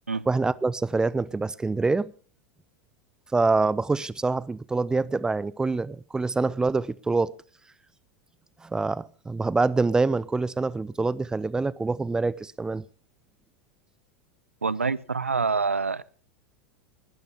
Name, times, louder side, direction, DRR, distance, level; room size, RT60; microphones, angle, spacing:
voice 1, 0.3-2.1 3.3-7.3 8.6-12.8, right 3 dB, 10° right, 0.5 m, -25 dB
voice 2, 14.6-16.0, right 4 dB, 80° right, 0.6 m, -26 dB
20.0 x 12.0 x 3.6 m
figure-of-eight pair, 85°, 7 cm